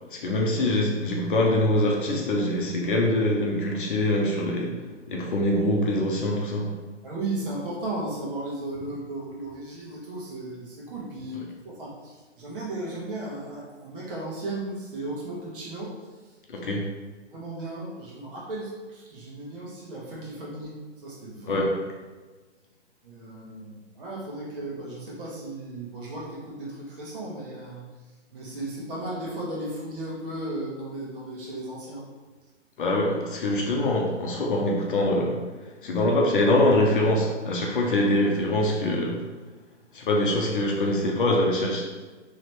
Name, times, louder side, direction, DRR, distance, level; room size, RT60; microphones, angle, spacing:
voice 1, 0.1-4.7 5.1-6.7 16.5-16.8 21.5-21.8 32.8-39.2 39.9-41.8, left 1 dB, 45° left, -1 dB, 0.7 m, -24 dB
voice 2, 7.0-16.0 16.5-16.6 17.2-20.7 21.0-21.6 23.0-27.9 28.3-32.0, right 2 dB, 45° right, -5 dB, 1.4 m, -35 dB
3.9 x 3.1 x 3.1 m, 1.3 s
figure-of-eight pair, 130°, 37 cm